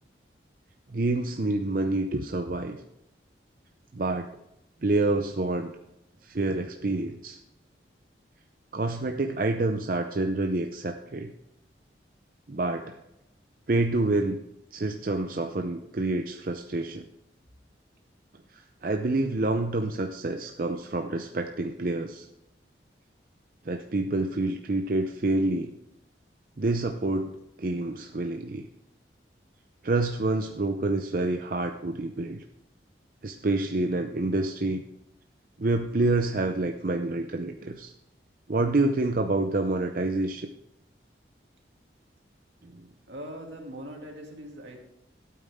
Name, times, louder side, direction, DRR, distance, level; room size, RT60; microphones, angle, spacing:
voice 1, 0.9-2.8 3.9-4.3 4.8-5.7 6.2-7.4 8.7-11.3 12.5-13.0 13.7-14.4 14.7-17.0 18.5-22.3 23.6-25.7 26.6-28.7 29.8-32.4 33.2-34.8 35.6-37.9 38.5-40.5 42.6-42.9, right 2 dB, 50° right, 5 dB, 0.6 m, -27 dB
voice 2, 43.1-44.8, equal, 80° right, 1 dB, 2.4 m, -41 dB
13.0 x 8.7 x 3.6 m, 0.86 s
head